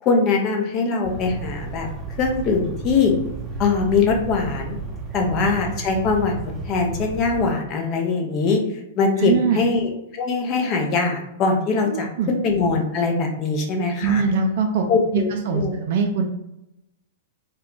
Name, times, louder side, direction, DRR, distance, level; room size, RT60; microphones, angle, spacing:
voice 1, 0.0-1.9 2.2-3.1 3.6-4.8 5.1-6.4 6.7-8.6 9.0-14.2 14.9-15.7, left 4 dB, 35° left, 2 dB, 0.6 m, -22 dB
sound 1, 1.0-7.5, right 3 dB, 5° right, 0.7 m, -33 dB
voice 2, 9.2-9.6 11.9-12.3 14.0-14.9 15.1-16.2, right 5 dB, 55° right, 3 dB, 0.4 m, -22 dB
2.3 x 2.3 x 3.6 m, 0.86 s
figure-of-eight pair, 105°, 0 cm